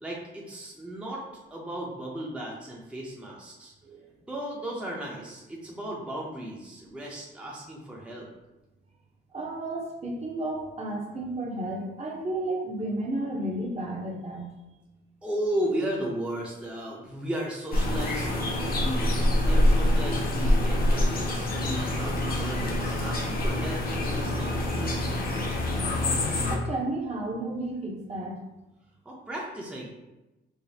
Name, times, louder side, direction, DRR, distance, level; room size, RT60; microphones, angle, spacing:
voice 1, 0.0-1.3 1.5-3.7 4.3-8.3 15.2-18.3 18.6-25.1 29.0-29.9, right 1 dB, 5° right, -3 dB, 0.6 m, -35 dB
voice 2, 9.3-14.5 26.5-28.4, right 1 dB, 35° right, -2 dB, 0.8 m, -32 dB
sound 1, 17.7-26.6, left 1 dB, 50° left, 0.8 m, -25 dB
4.9 x 2.1 x 2.7 m, 1.0 s
cardioid pair, 90°, 20 cm